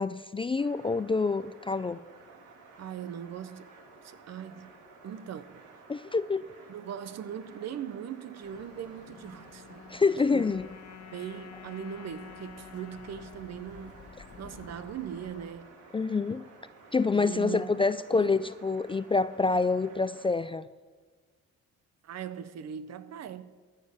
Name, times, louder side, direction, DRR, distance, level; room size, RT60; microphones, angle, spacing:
voice 1, 0.0-2.0 5.9-6.5 9.9-10.7 15.9-16.4 16.9-20.7, left 4 dB, 20° left, 0.3 m, -27 dB
sound 1, 0.6-20.3, right 3 dB, 85° right, 2.1 m, -54 dB
voice 2, 2.8-3.7 4.0-4.7 5.0-5.6 6.7-10.0 10.3-10.5 11.1-14.0 14.4-15.7 17.1-18.4 22.0-23.4, right 9 dB, 60° right, 0.9 m, -40 dB
sound 2, 8.4-15.5, left 5 dB, 50° left, 1.4 m, -54 dB
sound 3, 9.0-15.4, left 10 dB, 65° left, 0.7 m, -51 dB
14.5 x 6.7 x 6.9 m
cardioid pair, 90°, 30 cm